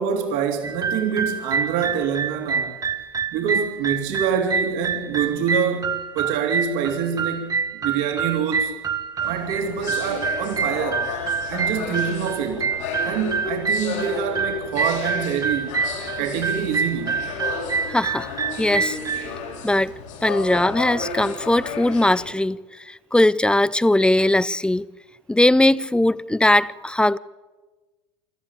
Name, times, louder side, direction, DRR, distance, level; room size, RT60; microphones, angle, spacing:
voice 1, 0.0-2.8 3.3-8.7 9.2-11.1 11.5-12.7 13.0-15.8 16.1-17.3, right 7 dB, 60° right, 3.4 m, -26 dB
sound 1, 0.6-19.3, right 6 dB, 20° right, 1.7 m, -27 dB
sound 2, 9.2-22.3, left 5 dB, 75° left, 6.8 m, -33 dB
voice 2, 17.9-18.3 18.6-19.0 19.6-19.9 20.2-24.9 25.3-27.2, left 1 dB, 5° left, 0.6 m, -19 dB
25.5 x 14.0 x 8.6 m
hypercardioid pair, 85°, 16 cm